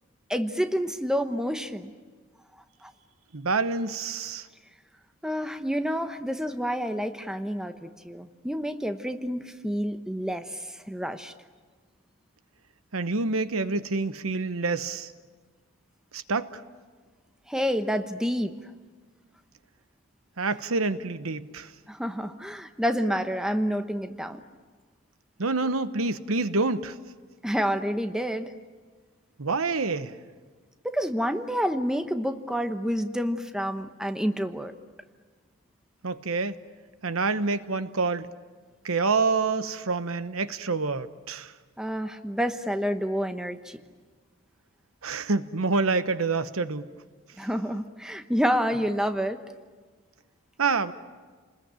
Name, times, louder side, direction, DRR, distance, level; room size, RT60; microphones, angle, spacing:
voice 1, 0.3-1.9 2.8-2.9 5.2-11.3 17.5-18.5 21.9-24.4 27.4-28.5 30.8-34.7 41.8-43.8 47.4-49.4, equal, 5° right, 0.9 m, -28 dB
voice 2, 3.3-4.5 12.9-15.1 16.1-16.6 20.4-21.7 25.4-27.0 29.4-30.1 36.0-36.6 37.0-38.3 38.8-41.5 45.0-46.9 50.6-50.9, right 3 dB, 85° right, 1.0 m, -27 dB
29.5 x 21.0 x 8.9 m
head